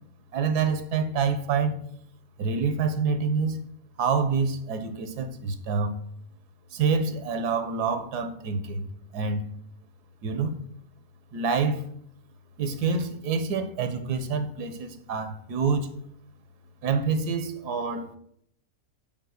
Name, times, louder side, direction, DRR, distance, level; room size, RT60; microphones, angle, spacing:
voice 1, 0.3-1.7 2.4-3.6 4.0-5.9 6.7-8.9 9.1-9.4 10.2-10.5 11.3-11.9 12.6-15.9 16.8-18.1, right 5 dB, 85° right, 9 dB, 1.4 m, -27 dB
5.8 x 4.4 x 6.4 m, 0.70 s
omnidirectional pair, 1.7 m